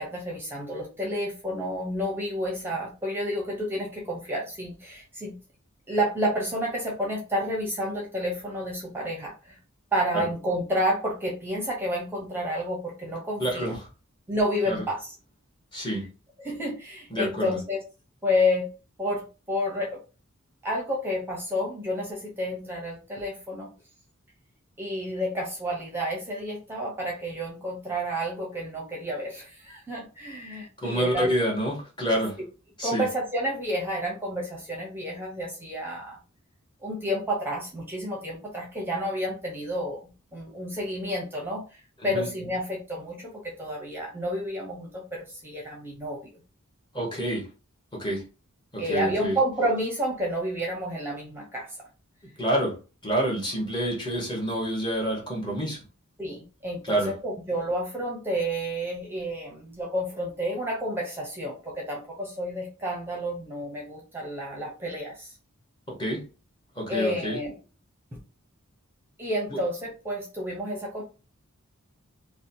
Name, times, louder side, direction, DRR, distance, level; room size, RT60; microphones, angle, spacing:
voice 1, 0.0-5.3 5.9-9.6 9.9-13.8 14.3-15.1 16.4-17.8 18.2-18.7 19.0-20.0 20.6-23.7 24.8-31.3 32.8-36.2 36.8-46.4 48.8-51.7 56.2-65.3 66.9-67.5 68.1-68.2 69.2-71.0, equal, 10° right, 0.7 m, -30 dB
voice 2, 13.4-13.8 14.7-14.8 15.7-16.1 17.1-17.5 30.8-32.4 32.8-33.0 42.0-42.3 46.9-47.5 47.9-48.2 48.7-49.4 52.4-52.8 53.0-55.8 56.8-57.1 66.0-66.2 66.8-67.4 69.5-69.6, right 1 dB, 20° left, 0.9 m, -27 dB
2.7 x 2.1 x 2.6 m
head